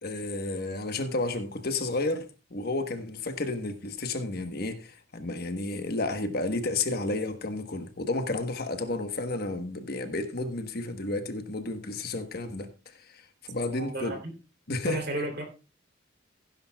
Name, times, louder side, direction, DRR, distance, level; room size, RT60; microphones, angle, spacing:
voice 1, 0.0-14.1 14.7-15.0, left 2 dB, 50° left, 1.2 m, -32 dB
voice 2, 13.7-14.2 14.8-15.5, right 1 dB, 50° right, 3.1 m, -32 dB
16.0 x 10.5 x 2.3 m
head